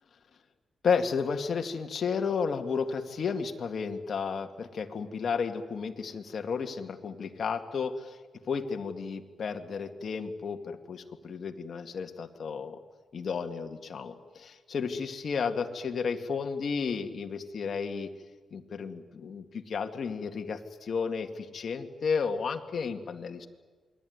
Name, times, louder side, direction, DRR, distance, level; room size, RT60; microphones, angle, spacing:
voice 1, 0.8-8.2 8.5-12.8 13.1-18.1 18.5-23.5, left 5 dB, 50° left, 5 dB, 2.1 m, -32 dB
28.0 x 21.5 x 9.6 m, 1.4 s
cardioid pair, 125°, 0 cm